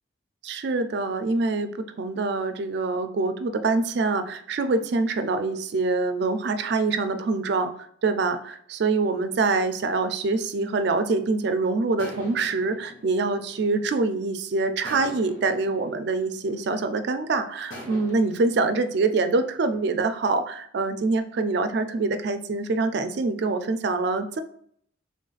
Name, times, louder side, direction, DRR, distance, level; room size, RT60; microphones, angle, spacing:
voice 1, 0.4-7.7 8.0-24.4, right 3 dB, 55° right, 9 dB, 0.4 m, -25 dB
sound 1, 10.7-11.4 12.0-14.2 14.8-17.1 17.7-20.0, equal, 85° left, 1.3 m, -44 dB
3.9 x 3.4 x 2.4 m, 0.64 s
head